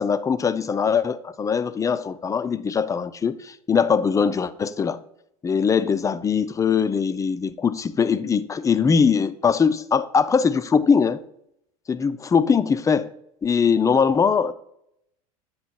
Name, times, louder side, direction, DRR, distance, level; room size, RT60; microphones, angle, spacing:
voice 1, 0.0-5.0 5.4-11.2 11.9-13.1 13.4-14.5, left 6 dB, 15° left, 0.4 m, -21 dB
9.1 x 3.6 x 4.3 m
hypercardioid pair, 80°, 19 cm